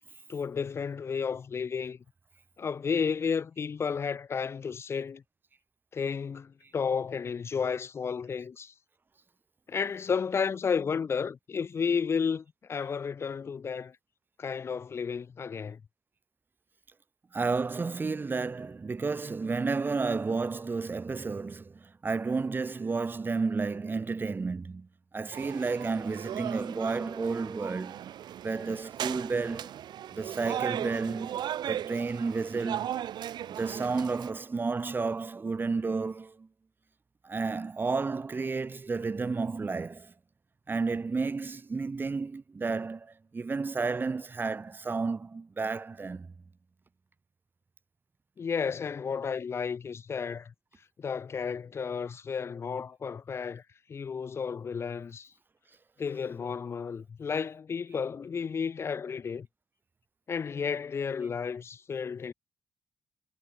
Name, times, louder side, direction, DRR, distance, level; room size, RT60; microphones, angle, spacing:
voice 1, 0.3-2.0 2.6-5.2 5.9-8.7 9.7-13.9 14.4-15.8 48.4-50.5 51.0-53.6 53.9-55.3 56.0-59.5 60.3-62.3, left 6 dB, 35° left, 0.4 m, -32 dB
voice 2, 17.3-24.9 25.1-28.0 28.4-29.8 30.1-31.3 31.7-33.0 33.5-36.5 37.2-40.1 40.7-46.3, right 4 dB, 25° right, 0.8 m, -31 dB
sound 1, 25.3-34.3, right 11 dB, 75° right, 1.0 m, -37 dB
cardioid pair, 105°, 7 cm